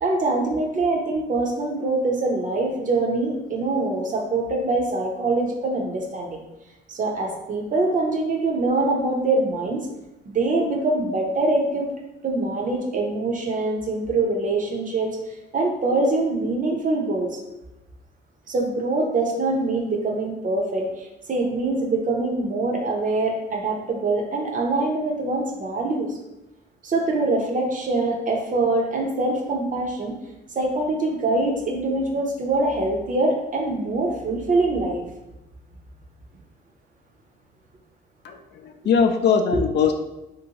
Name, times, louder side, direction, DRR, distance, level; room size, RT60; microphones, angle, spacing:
voice 1, 0.0-6.4 6.9-9.9 10.2-11.9 12.2-15.2 15.5-17.4 18.5-26.1 26.8-30.2 30.5-35.1 39.5-39.6, right 2 dB, 40° right, 0 dB, 0.7 m, -24 dB
voice 2, 38.6-39.9, left 6 dB, 60° left, 5 dB, 0.4 m, -20 dB
3.0 x 2.7 x 2.8 m, 0.94 s
cardioid pair, 90°, 20 cm